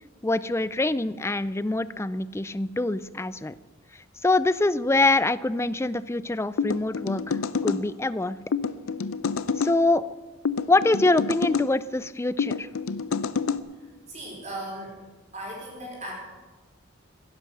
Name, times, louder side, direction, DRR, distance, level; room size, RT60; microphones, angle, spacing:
voice 1, 0.2-3.5 4.2-8.4 9.6-10.0 10.7-12.7, left 2 dB, 15° left, 16 dB, 0.4 m, -24 dB
sound 1, 6.6-7.8 8.5-9.7 10.4-11.7 12.4-13.6, left 5 dB, 80° left, 0.6 m, -27 dB
voice 2, 13.8-15.0 15.3-16.1, right 1 dB, 35° right, -3 dB, 4.6 m, -37 dB
15.5 x 11.0 x 6.8 m, 1.3 s
head